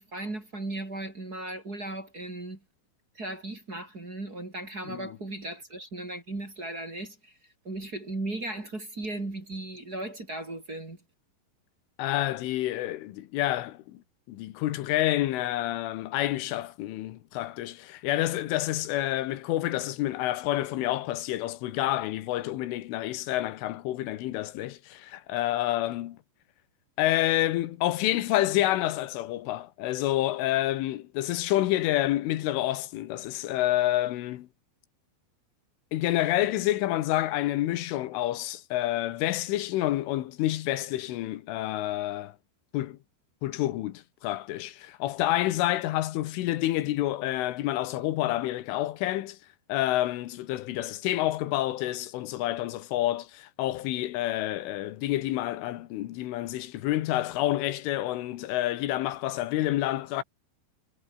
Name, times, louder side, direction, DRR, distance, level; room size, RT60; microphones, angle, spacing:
voice 1, 0.0-2.6 3.1-7.4 7.6-11.0, right 2 dB, 20° right, 3.8 m, -36 dB
voice 2, 12.0-14.0 14.3-26.2 27.0-34.5 35.9-42.3 42.7-43.0 43.4-49.4 49.7-60.2, left 15 dB, 85° left, 3.9 m, -28 dB
omnidirectional pair, 5.5 m